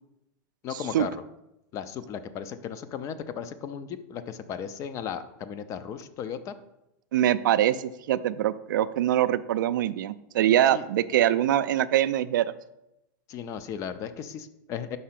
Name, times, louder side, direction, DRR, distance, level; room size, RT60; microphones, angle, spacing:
voice 1, 0.6-1.2 1.7-6.6 10.7-10.9 13.3-15.0, left 8 dB, 30° left, 12 dB, 0.4 m, -36 dB
voice 2, 7.1-12.4, right 12 dB, 85° right, 14 dB, 0.4 m, -23 dB
5.4 x 3.7 x 5.8 m, 0.87 s
supercardioid pair, 145°, 10 cm